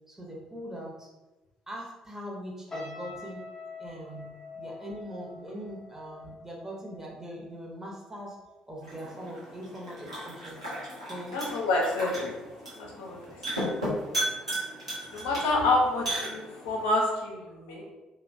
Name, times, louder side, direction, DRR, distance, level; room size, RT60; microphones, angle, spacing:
voice 1, 0.1-1.1 1.7-3.5 3.8-4.3 4.5-8.4 8.7-10.6 11.1-11.4, equal, 15° right, -3 dB, 0.8 m, -41 dB
sound 1, 2.7-8.0 8.3-8.6, left 3 dB, 20° left, 0.7 m, -45 dB
sound 2, 8.8-16.8, right 1 dB, 90° right, 0.7 m, -35 dB
voice 2, 11.3-12.3 12.8-13.2 15.1-17.9, left 2 dB, 70° left, -1 dB, 0.5 m, -28 dB
2.8 x 2.2 x 2.5 m, 1.1 s
figure-of-eight pair, 45°, 3 cm